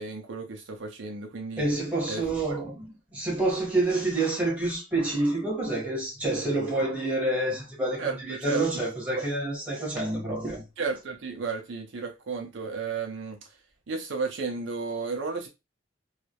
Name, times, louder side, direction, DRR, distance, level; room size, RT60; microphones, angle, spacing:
voice 1, 0.0-1.7 2.1-2.6 8.0-8.8 9.2-9.3 10.8-13.6 13.9-15.5, right 4 dB, 65° right, 0.5 m, -33 dB
voice 2, 1.6-10.6, right 2 dB, 5° right, 0.9 m, -28 dB
2.2 x 2.0 x 2.7 m
head